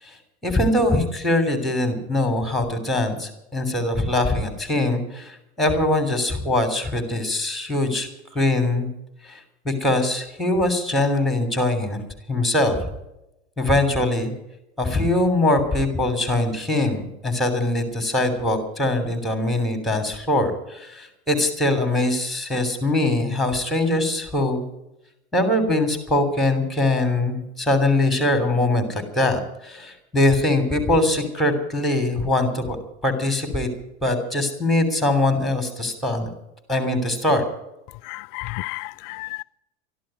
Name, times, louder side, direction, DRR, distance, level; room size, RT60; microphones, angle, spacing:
voice 1, 0.0-8.9 9.2-12.0 12.3-12.8 13.6-14.3 14.8-24.6 25.3-32.8 33.0-33.7 34.0-36.3 36.7-37.4, left 2 dB, ahead, 3.2 m, -22 dB
voice 2, 38.1-39.4, left 23 dB, 50° left, 0.5 m, -32 dB
13.0 x 11.5 x 9.0 m
hypercardioid pair, 115°, 33 cm